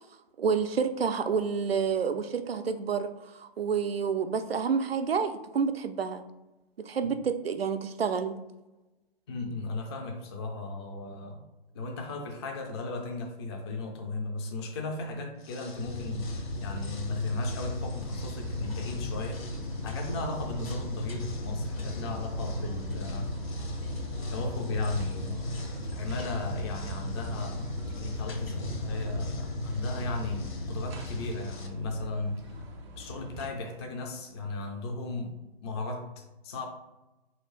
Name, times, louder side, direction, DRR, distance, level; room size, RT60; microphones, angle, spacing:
voice 1, 0.4-6.2 6.8-8.4, right 6 dB, 80° right, 9 dB, 0.5 m, -29 dB
voice 2, 9.3-11.5 11.7-19.5 19.8-23.3 24.3-25.5 25.9-32.6 33.0-35.4 35.6-36.7, left 3 dB, 30° left, 2 dB, 0.4 m, -36 dB
sound 1, 15.3-31.7, left 4 dB, 55° left, 0.8 m, -52 dB
sound 2, 15.8-31.3, left 1 dB, 80° left, 0.9 m, -36 dB
sound 3, 17.6-33.5, equal, 30° right, 0.5 m, -43 dB
4.3 x 2.7 x 3.0 m, 1.0 s
figure-of-eight pair, 120°, 30 cm